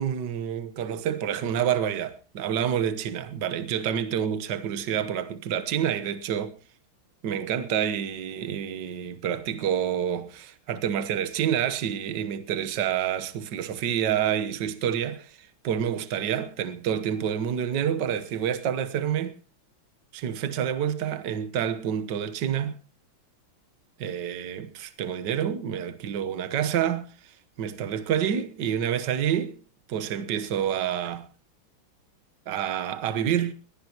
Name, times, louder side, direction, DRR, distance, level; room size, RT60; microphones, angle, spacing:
voice 1, 0.0-6.6 7.2-19.4 20.1-22.8 24.0-27.1 27.6-29.6 29.9-31.3 32.5-33.5, right 9 dB, 55° right, 1.7 m, -28 dB
21.5 x 17.0 x 3.0 m
omnidirectional pair, 2.4 m